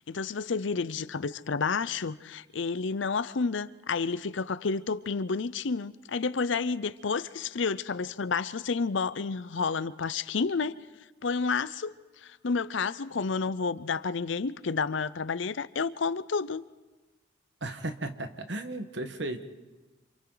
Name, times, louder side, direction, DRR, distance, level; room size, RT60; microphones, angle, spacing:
voice 1, 0.1-10.8 11.2-16.6, left 4 dB, 70° left, 0.6 m, -30 dB
voice 2, 17.6-19.4, right 2 dB, 65° right, 1.5 m, -35 dB
28.5 x 27.5 x 4.0 m
head